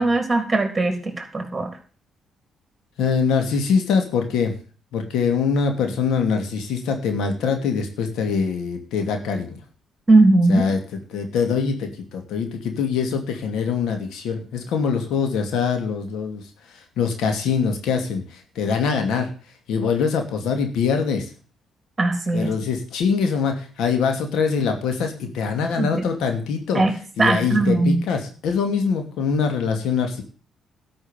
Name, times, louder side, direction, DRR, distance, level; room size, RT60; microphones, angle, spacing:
voice 1, 0.0-1.7 10.1-10.6 22.0-22.5 25.8-26.1 26.7-26.9 27.2-28.0, right 2 dB, 20° right, 5 dB, 3.6 m, -19 dB
voice 2, 3.0-4.5 4.9-9.6 10.5-16.4 16.7-19.3 19.7-21.3 22.3-26.8 27.2-30.2, left 5 dB, 85° left, 5 dB, 2.6 m, -23 dB
12.5 x 6.2 x 9.1 m, 0.39 s
cardioid pair, 90°, 0 cm